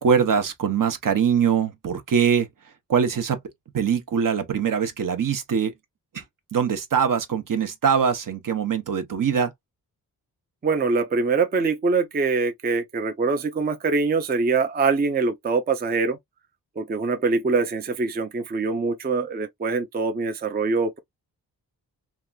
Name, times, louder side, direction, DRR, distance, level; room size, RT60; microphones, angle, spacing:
voice 1, 0.0-2.5 2.9-3.4 3.7-5.7 6.1-6.2 6.5-9.5, right 7 dB, 60° right, 0.8 m, -22 dB
voice 2, 10.6-16.2 16.8-21.0, right 4 dB, 25° right, 0.4 m, -24 dB
2.8 x 2.3 x 2.3 m
cardioid pair, 85°, 38 cm